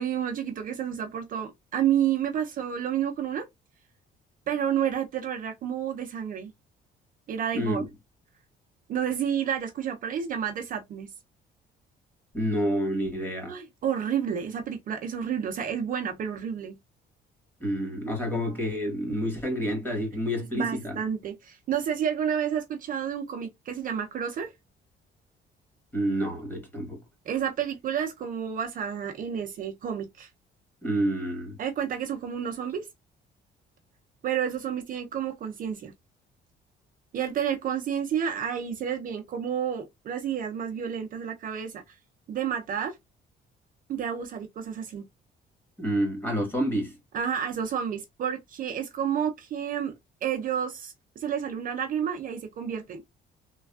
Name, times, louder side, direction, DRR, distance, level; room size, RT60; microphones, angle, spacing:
voice 1, 0.0-3.5 4.5-6.5 7.3-7.9 8.9-11.1 13.5-16.8 18.3-18.4 20.5-24.5 27.3-30.3 31.6-32.9 34.2-35.9 37.1-41.9 42.3-43.0 43.9-45.0 47.1-49.9 50.2-53.0, right 8 dB, 45° right, 0.5 m, -30 dB
voice 2, 7.5-7.9 12.3-13.5 17.6-21.0 25.9-27.0 30.8-31.6 45.8-47.0, equal, 10° left, 1.2 m, -28 dB
3.3 x 2.3 x 2.2 m
cardioid pair, 150°, 19 cm